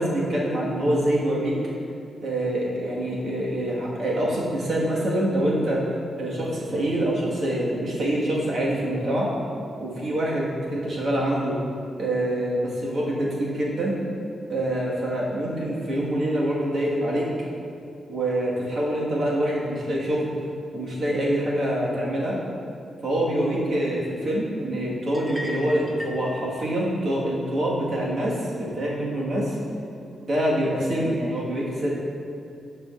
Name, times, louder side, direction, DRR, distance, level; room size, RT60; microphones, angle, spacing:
voice 1, 0.0-1.5 2.2-5.8 6.2-9.3 9.8-11.6 12.0-13.9 14.5-17.3 18.1-20.3 20.7-22.4 23.0-29.6 30.2-31.9, right 1 dB, 45° right, -5 dB, 1.5 m, -25 dB
sound 1, 25.1-26.3, equal, 5° right, 0.7 m, -36 dB
14.0 x 5.0 x 2.5 m, 2.5 s
wide cardioid pair, 175°, 0 cm